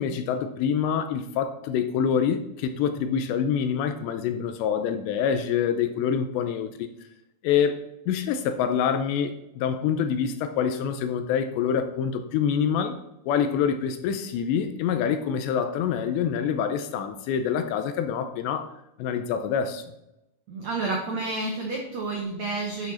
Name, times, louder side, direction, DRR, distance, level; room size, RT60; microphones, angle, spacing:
voice 1, 0.0-6.9 7.4-13.0 13.3-18.7 19.0-19.8, left 7 dB, 85° left, 9 dB, 2.9 m, -26 dB
voice 2, 20.5-22.9, right 3 dB, 80° right, 0 dB, 1.6 m, -30 dB
11.0 x 6.4 x 4.3 m, 0.86 s
omnidirectional pair, 5.3 m